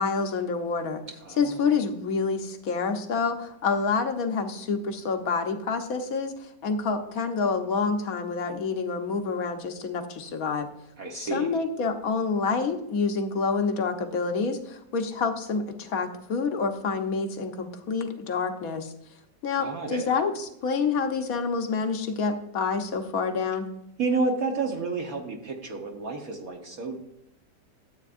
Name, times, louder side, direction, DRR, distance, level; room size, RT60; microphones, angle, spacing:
voice 1, 0.0-1.0 1.4-10.7 11.1-18.9 19.4-23.7, left 4 dB, 55° left, 6 dB, 1.3 m, -28 dB
voice 2, 1.2-1.8 11.0-11.5 19.6-20.1 24.0-27.0, right 3 dB, 55° right, 1 dB, 1.4 m, -30 dB
13.5 x 8.3 x 2.5 m, 0.78 s
omnidirectional pair, 2.0 m